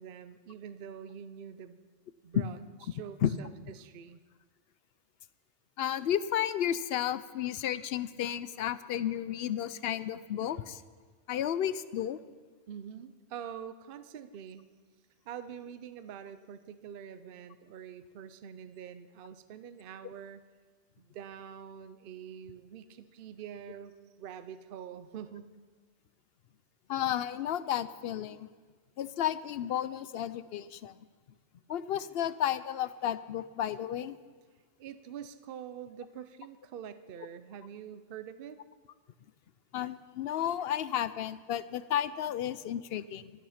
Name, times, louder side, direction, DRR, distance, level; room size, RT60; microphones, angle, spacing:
voice 1, 0.0-1.8 2.2-2.6 2.9-4.2 12.7-14.7 15.2-20.4 21.0-25.5 34.8-38.6, right 8 dB, 55° right, 12 dB, 0.8 m, -45 dB
voice 2, 5.8-10.8 11.3-12.2 26.9-28.5 29.0-31.0 31.7-34.2 39.7-43.3, left 10 dB, 65° left, 15 dB, 0.7 m, -32 dB
13.0 x 12.0 x 5.7 m, 1.4 s
omnidirectional pair, 1.3 m